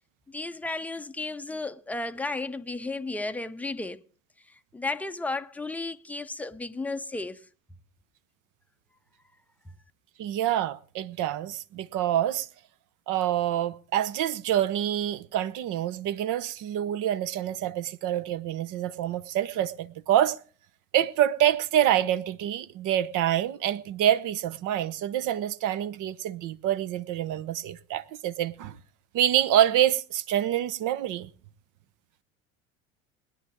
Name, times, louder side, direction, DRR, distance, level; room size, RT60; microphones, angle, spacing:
voice 1, 0.3-4.0 4.5-7.4, left 3 dB, 5° left, 0.7 m, -33 dB
voice 2, 10.2-12.5 13.1-20.4 20.9-28.8 29.1-31.3, right 11 dB, 50° right, 0.9 m, -26 dB
20.5 x 10.0 x 3.6 m
hypercardioid pair, 70°, 41 cm